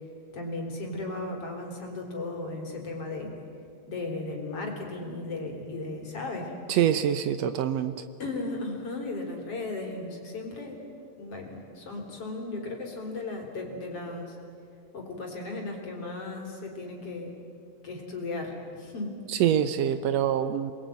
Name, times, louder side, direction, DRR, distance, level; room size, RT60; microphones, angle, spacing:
voice 1, 0.3-3.3 3.9-6.6 8.2-10.8 11.2-14.4 14.9-17.3 17.8-19.1, left 2 dB, 40° left, 1 dB, 4.6 m, -36 dB
voice 2, 6.7-7.9 19.3-20.7, right 10 dB, 85° right, 10 dB, 1.5 m, -25 dB
28.5 x 21.0 x 9.3 m, 2.5 s
omnidirectional pair, 4.0 m